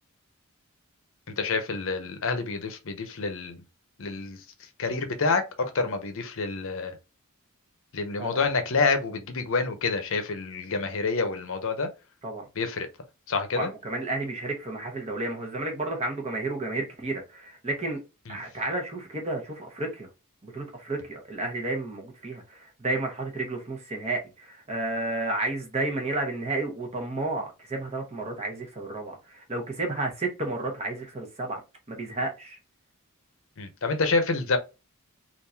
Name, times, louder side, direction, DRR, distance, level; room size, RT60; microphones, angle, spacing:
voice 1, 1.3-3.6 4.0-4.4 4.8-7.0 7.9-11.9 12.6-12.9 13.3-13.7 33.6-34.6, left 4 dB, 60° left, 0.7 m, -28 dB
voice 2, 13.5-18.0 18.3-20.1 20.4-31.6 31.9-32.6, right 2 dB, 30° right, 1.0 m, -32 dB
3.7 x 2.6 x 2.7 m
head